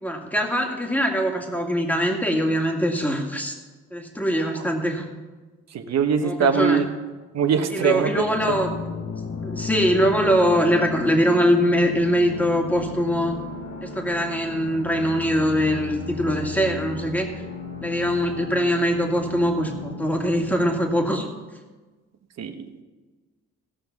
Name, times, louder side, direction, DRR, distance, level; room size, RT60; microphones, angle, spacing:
voice 1, 0.0-3.6 3.9-5.1 6.2-6.8 7.7-8.7 9.4-13.4 13.8-17.3 17.8-21.3, equal, 5° left, 2 dB, 2.0 m, -22 dB
voice 2, 5.7-6.9 7.3-8.5 22.4-22.7, right 6 dB, 60° right, 6 dB, 1.1 m, -22 dB
sound 1, 8.0-21.0, left 4 dB, 65° left, 1.6 m, -34 dB
16.5 x 6.0 x 5.8 m, 1.3 s
cardioid pair, 90°, 30 cm